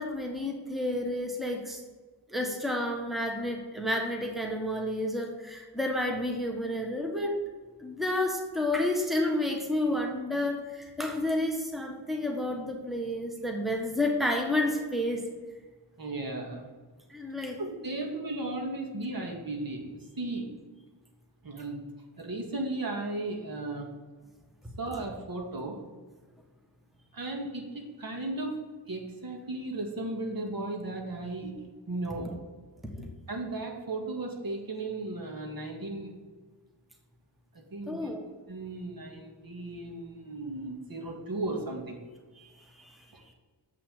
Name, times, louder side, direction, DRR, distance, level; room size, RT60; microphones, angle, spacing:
voice 1, 0.0-1.8 2.3-7.4 7.8-15.2 17.1-17.6 33.0-33.1 37.9-38.2 42.4-42.5 42.7-43.0, left 1 dB, ahead, 1 dB, 1.4 m, -30 dB
voice 2, 16.0-16.7 17.6-20.4 21.4-21.9 22.2-23.9 24.8-25.8 27.1-28.6 28.9-31.6 31.9-32.3 33.3-36.1 37.7-38.1 38.5-42.0 43.1-43.2, right 2 dB, 55° right, 1 dB, 1.9 m, -35 dB
7.6 x 5.7 x 7.2 m, 1.3 s
wide cardioid pair, 85°, 42 cm